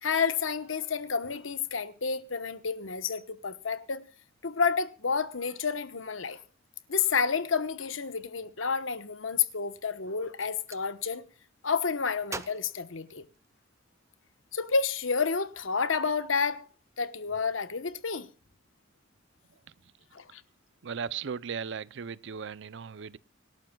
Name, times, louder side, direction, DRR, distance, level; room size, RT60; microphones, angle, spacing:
voice 1, 0.0-4.0 4.4-6.4 6.9-11.2 11.6-13.2 14.5-16.6 17.0-18.3 20.1-20.4, left 5 dB, 85° left, 1.1 m, -30 dB
Gunshot gunfire, 10.2-10.9 12.3-13.7, right 3 dB, 15° right, 0.9 m, -43 dB
voice 2, 20.8-23.2, right 6 dB, 70° right, 0.6 m, -37 dB
25.5 x 12.0 x 2.3 m
head